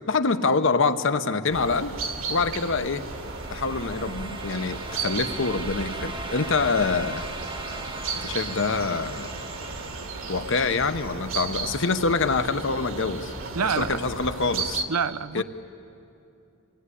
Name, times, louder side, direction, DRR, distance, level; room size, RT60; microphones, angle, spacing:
voice 1, 0.1-1.9 2.3-3.0 3.5-7.2 8.2-9.3 10.3-13.3 13.8-14.8 15.3-15.4, left 4 dB, 60° left, 9 dB, 0.9 m, -25 dB
sound 1, 1.5-14.8, right 4 dB, 60° right, 1.8 m, -34 dB
sound 2, 2.4-11.3, right 2 dB, 20° right, 0.9 m, -40 dB
voice 2, 13.5-14.0 14.9-15.4, right 6 dB, 80° right, 15 dB, 0.6 m, -26 dB
26.0 x 17.5 x 9.9 m, 2.8 s
head